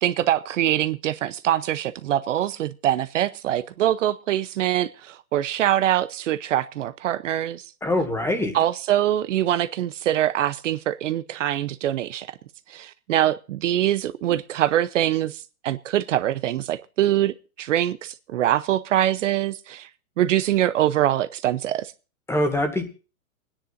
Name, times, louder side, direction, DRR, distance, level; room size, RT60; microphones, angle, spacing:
voice 1, 0.0-7.6 8.5-12.3 12.7-19.9 20.2-21.9, right 12 dB, 60° right, 0.8 m, -24 dB
voice 2, 7.8-8.6 22.3-22.8, left 1 dB, 5° left, 1.8 m, -23 dB
29.0 x 10.0 x 2.6 m
hypercardioid pair, 145°, 43 cm